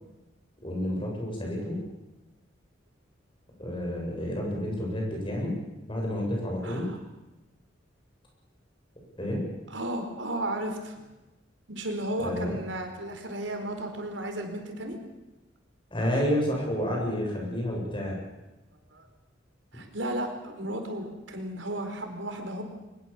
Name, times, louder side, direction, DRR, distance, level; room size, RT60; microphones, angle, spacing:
voice 1, 0.6-1.8 3.6-5.6 5.9-6.9 9.2-9.4 12.2-12.6 15.9-18.2, equal, 25° left, -1 dB, 7.8 m, -30 dB
voice 2, 9.7-10.9 11.7-15.0 18.9-19.1 19.7-22.6, right 1 dB, 85° right, 5 dB, 4.5 m, -34 dB
23.0 x 21.5 x 7.3 m, 1.1 s
head